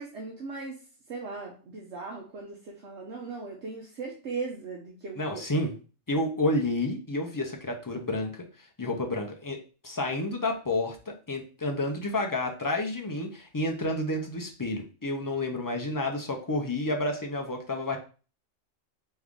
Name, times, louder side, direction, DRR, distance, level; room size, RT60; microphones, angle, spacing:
voice 1, 0.0-5.7, right 4 dB, 70° right, -1 dB, 1.1 m, -38 dB
voice 2, 5.2-5.7 6.1-8.4 8.8-9.6 9.8-18.0, left 2 dB, 25° left, 2 dB, 0.4 m, -30 dB
3.6 x 3.2 x 3.6 m, 0.36 s
omnidirectional pair, 1.3 m